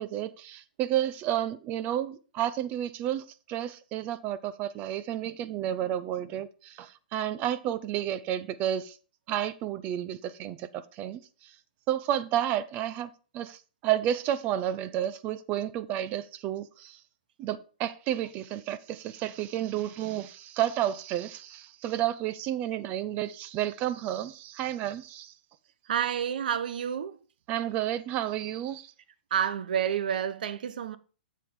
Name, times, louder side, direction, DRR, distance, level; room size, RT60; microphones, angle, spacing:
voice 1, 0.0-9.0 9.3-11.2 11.9-17.0 17.4-25.3 27.5-28.9, right 11 dB, 35° right, 0.6 m, -31 dB
voice 2, 25.9-27.2 29.3-31.0, right 9 dB, 70° right, 0.8 m, -29 dB
7.5 x 7.5 x 3.7 m
hypercardioid pair, 130°, 5 cm